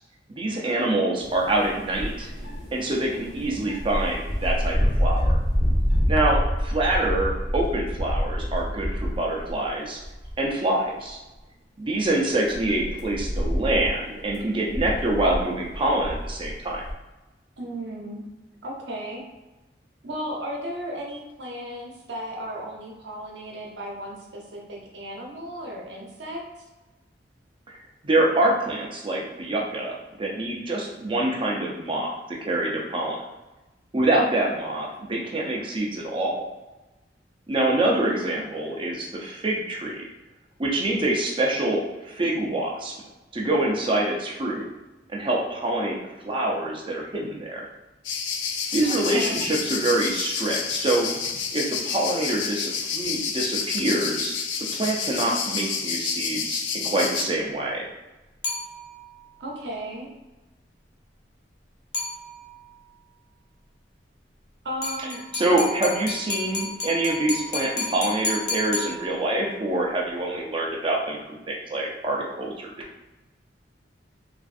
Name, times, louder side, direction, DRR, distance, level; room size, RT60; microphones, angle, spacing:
voice 1, 0.3-2.3 2.7-5.4 6.1-10.0 10.4-11.2 11.8-16.8 27.7-27.8 28.0-33.2 33.9-36.4 37.5-40.0 40.6-42.9 43.3-44.7 45.1-46.0 46.2-47.7 48.7-51.1 51.5-54.3 54.7-57.9 65.3-71.2 71.5-72.7, right 1 dB, 30° right, -1 dB, 0.5 m, -25 dB
sound 1, 1.2-9.7 10.0-10.5 11.0-11.1 12.0-16.9, equal, 25° left, 0.9 m, -27 dB
voice 2, 17.6-18.2 18.6-19.2 20.0-26.4 37.8-38.4 48.8-49.5 59.4-60.1 64.6-65.2, equal, 75° right, -2 dB, 0.8 m, -35 dB
sound 2, 48.0-57.2, left 6 dB, 80° left, 0.4 m, -29 dB
sound 3, 58.4-59.2 61.9-62.7 64.8-69.5, left 2 dB, 65° left, 0.8 m, -32 dB
3.1 x 2.5 x 2.5 m, 1.1 s
head